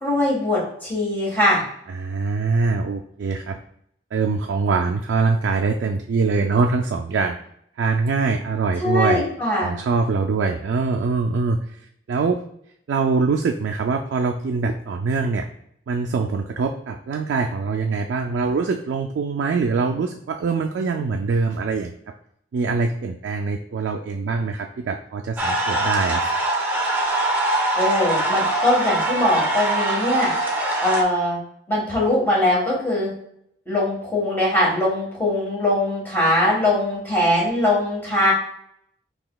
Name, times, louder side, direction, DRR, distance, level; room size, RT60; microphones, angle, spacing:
voice 1, 0.0-1.6 8.8-9.7 27.7-30.3 30.8-31.4 31.7-33.1 33.7-38.3, left 1 dB, 10° left, -6 dB, 1.3 m, -21 dB
voice 2, 1.9-3.6 4.1-7.4 7.8-9.3 9.6-11.6 12.1-12.4 12.9-15.5 15.9-21.9 22.5-26.4, right 4 dB, 70° right, 2 dB, 0.3 m, -23 dB
sound 1, 25.4-31.0, right 2 dB, 10° right, 0.5 m, -23 dB
5.7 x 2.9 x 2.2 m, 0.71 s
head